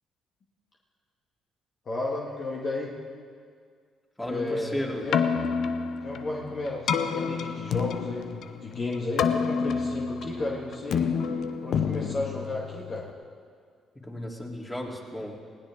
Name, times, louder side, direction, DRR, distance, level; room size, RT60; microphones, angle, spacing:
voice 1, 1.9-2.9 4.3-5.3 6.0-11.1 11.6-13.1, left 2 dB, 50° left, -3 dB, 2.1 m, -33 dB
voice 2, 4.2-5.0 14.0-15.4, left 1 dB, 15° left, -2 dB, 3.6 m, -34 dB
Keyboard (musical), 5.0-13.1, left 6 dB, 65° left, 0.8 m, -29 dB
20.0 x 17.0 x 3.8 m, 2.1 s
hypercardioid pair, 55°, 0 cm